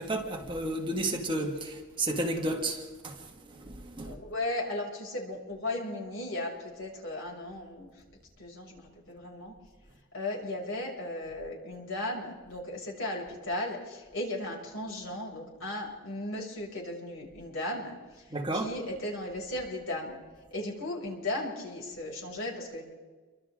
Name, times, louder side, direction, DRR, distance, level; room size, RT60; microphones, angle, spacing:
voice 1, 0.0-4.2 18.3-18.7, right 1 dB, 20° right, 2.0 m, -32 dB
voice 2, 4.0-7.9 8.4-9.5 10.1-18.2 18.5-20.2 20.5-22.9, left 1 dB, 65° left, 6.4 m, -36 dB
29.5 x 24.5 x 3.7 m
head